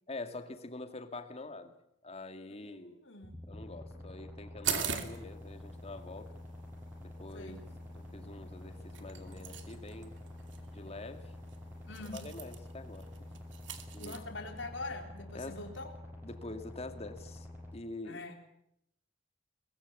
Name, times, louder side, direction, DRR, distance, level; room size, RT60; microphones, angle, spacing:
voice 1, 0.1-1.7 2.0-3.0 3.5-6.3 7.0-7.6 7.9-10.1 10.7-11.3 12.1-13.0 13.9-14.2 15.3-15.6 16.2-17.5 17.7-18.3, left 2 dB, 35° left, 7 dB, 2.2 m, -45 dB
voice 2, 2.5-3.4 7.3-7.6 11.9-12.2 14.0-15.9 18.0-18.3, left 2 dB, 85° left, 3 dB, 3.9 m, -44 dB
sound 1, 3.2-17.7, left 1 dB, 10° right, 7.0 m, -48 dB
sound 2, 4.6-14.2, right 7 dB, 80° right, 2.6 m, -43 dB
23.0 x 20.5 x 8.4 m, 0.76 s
head